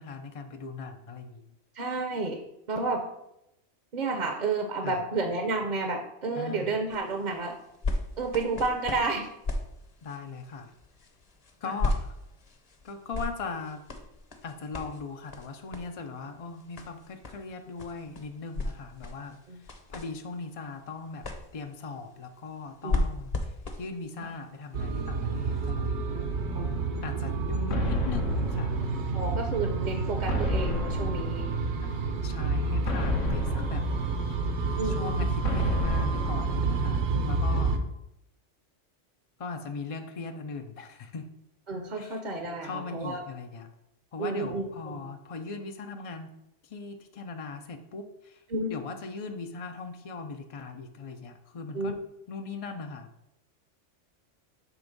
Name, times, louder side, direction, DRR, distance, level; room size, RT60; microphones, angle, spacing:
voice 1, 0.0-1.4 4.8-5.0 6.4-6.7 10.0-10.7 11.6-12.1 12.8-13.8 14.4-21.3 21.5-26.1 27.0-28.8 31.8-31.9 32.2-33.8 34.8-37.7 39.4-41.3 42.0-42.2 42.6-43.7 44.1-46.3 46.6-48.4 48.7-52.0 52.3-53.1, left 4 dB, 55° left, 5 dB, 0.4 m, -39 dB
voice 2, 1.7-2.4 2.7-3.0 3.9-7.6 8.2-9.3 11.6-11.7 19.5-19.6 22.8-23.1 24.2-24.3 26.5-26.7 29.1-31.5 34.8-35.1 37.1-37.4 41.7-43.2 44.2-45.1 48.5-48.7 51.7-51.9, right 3 dB, 45° right, 4 dB, 0.7 m, -31 dB
sound 1, 6.9-25.7 26.4-26.5, left 2 dB, 35° left, 0.7 m, -37 dB
sound 2, 24.7-37.8, right 3 dB, 65° right, 1.1 m, -29 dB
sound 3, 27.7-29.5 30.3-32.0 32.9-34.6 35.4-37.2, left 1 dB, 85° left, 1.3 m, -32 dB
7.4 x 3.5 x 5.2 m, 0.83 s
omnidirectional pair, 1.3 m